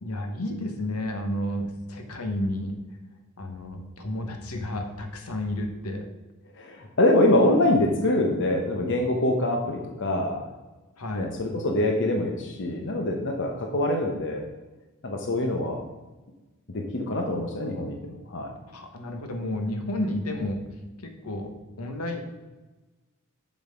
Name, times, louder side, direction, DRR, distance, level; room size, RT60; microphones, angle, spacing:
voice 1, 0.0-2.7 3.4-6.1 11.0-11.3 18.7-20.6 21.0-22.2, left 1 dB, 80° left, 5 dB, 1.2 m, -31 dB
voice 2, 6.6-10.4 11.1-14.4 15.0-15.8 16.7-18.5, left 1 dB, 55° left, 2 dB, 0.9 m, -24 dB
7.0 x 6.4 x 5.1 m, 1.2 s
head